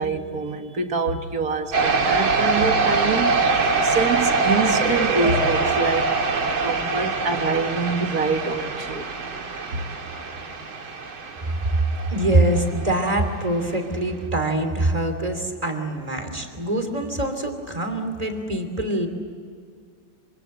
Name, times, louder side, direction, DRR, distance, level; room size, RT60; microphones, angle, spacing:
voice 1, 0.0-6.2 6.6-9.1 9.7-9.8, right 4 dB, 45° right, 6 dB, 2.0 m, -25 dB
sound 1, 1.7-13.2, right 4 dB, 65° right, 3.0 m, -24 dB
voice 2, 12.1-19.1, right 1 dB, 15° right, 5 dB, 2.9 m, -24 dB
26.0 x 26.0 x 7.8 m, 2.2 s
omnidirectional pair, 2.4 m